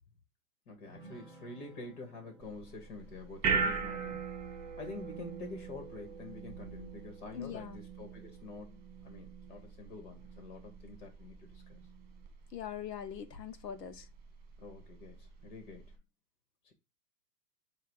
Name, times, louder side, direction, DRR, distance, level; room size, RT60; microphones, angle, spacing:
voice 1, 0.7-4.3 4.6-11.8 14.6-16.0 16.6-16.7, left 3 dB, 45° left, 2.1 m, -47 dB
sound 1, 0.8-6.5, right 2 dB, 15° left, 4.1 m, -59 dB
sound 2, 2.4-15.9, right 5 dB, 20° right, 1.7 m, -40 dB
voice 2, 7.3-7.8 12.5-14.1, left 9 dB, 70° left, 1.4 m, -42 dB
7.9 x 2.9 x 4.8 m
hypercardioid pair, 130°, 50 cm